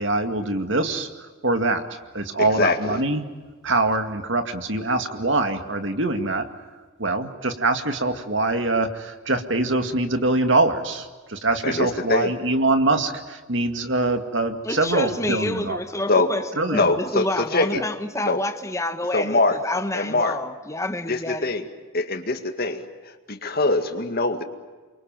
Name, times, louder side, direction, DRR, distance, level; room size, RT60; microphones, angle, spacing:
voice 1, 0.0-3.3 3.6-6.5 7.0-15.8 16.6-16.9, right 2 dB, 60° right, 7 dB, 2.2 m, -24 dB
voice 2, 2.4-3.0 11.6-12.3 16.1-16.3 16.7-17.8 18.2-18.4 19.1-19.6 19.9-20.4 21.1-21.7 21.9-22.9 23.3-24.4, left 2 dB, 45° left, 7 dB, 2.1 m, -23 dB
voice 3, 14.6-21.5, left 1 dB, 15° left, 9 dB, 1.3 m, -28 dB
29.0 x 24.0 x 7.6 m, 1.4 s
head